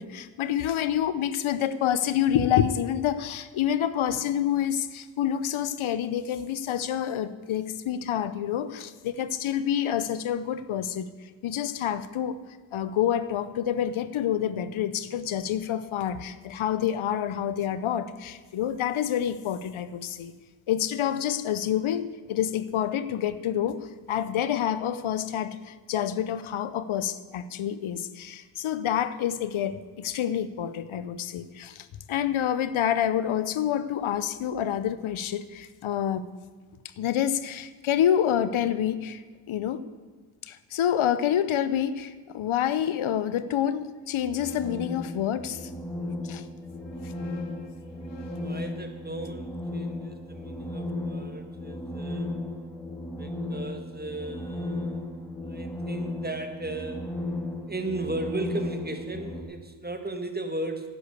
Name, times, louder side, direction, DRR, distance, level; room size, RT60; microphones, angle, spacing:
voice 1, 0.0-11.1 11.4-12.4 12.7-20.3 20.7-36.3 37.0-39.2 39.5-39.8 40.4-45.7 46.2-46.4, left 10 dB, 85° left, 14 dB, 0.9 m, -28 dB
sound 1, 43.9-45.8 46.6-50.8, left 3 dB, 65° left, 1.9 m, -53 dB
sound 2, 44.2-59.4, left 1 dB, 5° left, 3.0 m, -35 dB
voice 2, 48.4-52.3 53.2-55.1 55.5-57.1 57.7-60.9, right 2 dB, 20° right, 7 dB, 2.0 m, -36 dB
11.5 x 9.9 x 8.2 m, 1.5 s
cardioid pair, 60°, 47 cm